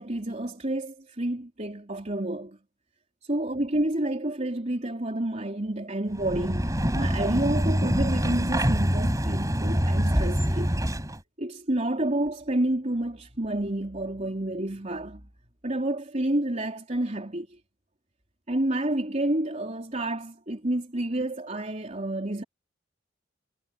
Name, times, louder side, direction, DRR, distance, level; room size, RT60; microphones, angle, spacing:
voice 1, 0.0-2.6 3.3-10.7 11.4-15.2 15.6-17.5 18.5-22.4, right 1 dB, 35° right, 3.8 m, -29 dB
sound 1, 6.1-11.2, equal, 20° right, 5.9 m, -25 dB
head